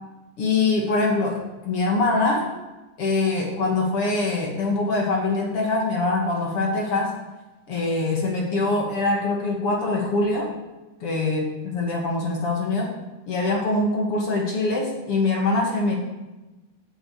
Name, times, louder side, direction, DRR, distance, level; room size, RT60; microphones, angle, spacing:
voice 1, 0.4-2.5 3.0-7.1 7.7-10.5 11.0-13.0 13.3-16.0, left 3 dB, 50° left, 0 dB, 2.4 m, -23 dB
9.9 x 7.3 x 8.5 m, 1.1 s
omnidirectional pair, 3.6 m